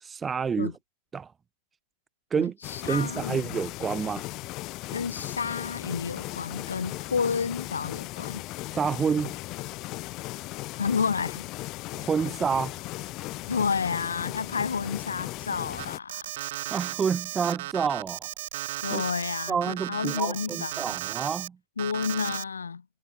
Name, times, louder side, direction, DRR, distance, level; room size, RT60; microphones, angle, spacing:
voice 1, 0.0-0.7 1.1-1.3 2.3-2.6 2.8-4.3 8.7-9.4 11.9-12.7 16.7-18.3 18.9-19.0 19.5-21.6, right 6 dB, 20° right, 0.4 m, -28 dB
voice 2, 2.4-3.6 4.9-8.4 10.8-11.5 13.5-16.4 18.8-21.0 21.8-22.8, left 5 dB, 75° left, 0.4 m, -30 dB
sound 1, 2.6-16.0, left 20 dB, 40° left, 1.2 m, -37 dB
sound 2, 12.7-13.6 14.7-16.1, left 3 dB, 10° left, 6.9 m, -56 dB
Alarm, 15.8-21.5 21.8-22.4, right 16 dB, 55° right, 1.2 m, -35 dB
figure-of-eight pair, 90°, 0 cm